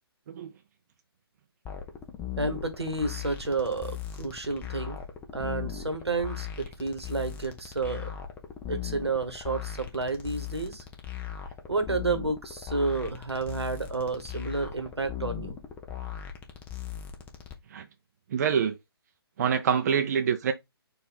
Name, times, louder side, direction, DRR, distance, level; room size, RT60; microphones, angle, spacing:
sound 1, 1.7-17.5, left 9 dB, 15° left, 0.6 m, -39 dB
voice 1, 2.4-5.0 5.3-8.1 8.7-10.8 11.7-15.6, right 3 dB, 85° right, 1.3 m, -30 dB
voice 2, 18.3-18.7 19.4-20.5, right 7 dB, 40° right, 0.6 m, -25 dB
4.4 x 2.6 x 4.1 m
figure-of-eight pair, 140°, 13 cm